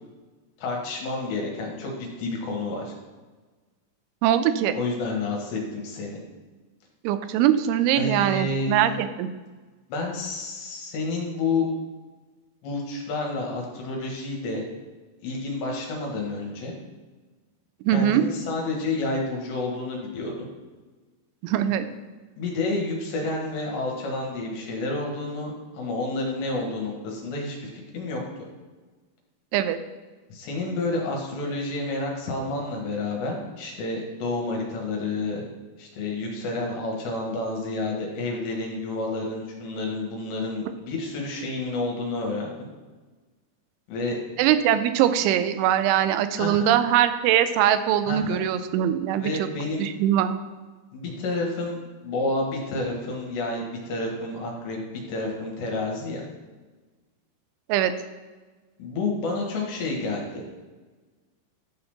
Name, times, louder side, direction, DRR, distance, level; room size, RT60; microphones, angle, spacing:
voice 1, 0.6-2.9 4.7-6.2 8.0-8.9 9.9-11.7 12.6-14.6 15.2-16.7 17.9-20.5 22.4-28.4 30.3-35.4 35.8-42.7 43.9-44.2 46.4-46.7 48.1-48.4 49.2-49.9 50.9-54.8 55.1-56.2 58.8-60.4, left 2 dB, 70° left, -1 dB, 3.4 m, -30 dB
voice 2, 4.2-4.7 7.0-9.3 17.9-18.2 21.4-21.9 29.5-29.8 44.4-49.5 49.8-50.4 57.7-57.9, right 11 dB, 85° right, 11 dB, 3.0 m, -22 dB
11.5 x 4.3 x 5.7 m, 1.3 s
omnidirectional pair, 5.5 m